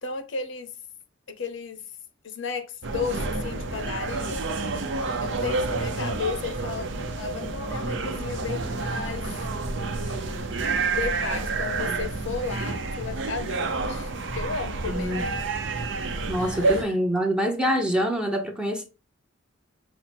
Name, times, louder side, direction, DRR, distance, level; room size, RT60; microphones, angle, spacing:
voice 1, 0.0-0.7 1.3-1.8 2.2-4.5 5.2-6.9 7.2-9.3 9.9-10.5 10.9-15.4 16.4-17.0, left 5 dB, 65° left, 0.7 m, -34 dB
sound 1, 2.8-16.8, right 3 dB, 65° right, 0.6 m, -29 dB
voice 2, 14.8-15.3 16.3-18.9, equal, 5° right, 0.7 m, -25 dB
5.6 x 2.0 x 4.2 m
head